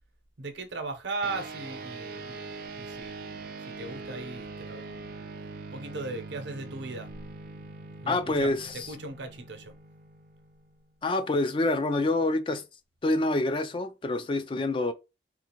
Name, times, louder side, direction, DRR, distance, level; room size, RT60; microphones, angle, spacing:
voice 1, 0.4-5.1 5.7-7.1 8.0-9.7, right 3 dB, 90° right, 0.8 m, -38 dB
sound 1, 1.2-11.0, right 3 dB, 55° right, 0.4 m, -42 dB
voice 2, 8.1-8.9 11.0-12.6 13.0-14.9, left 2 dB, 30° left, 0.3 m, -27 dB
3.7 x 2.5 x 2.9 m
head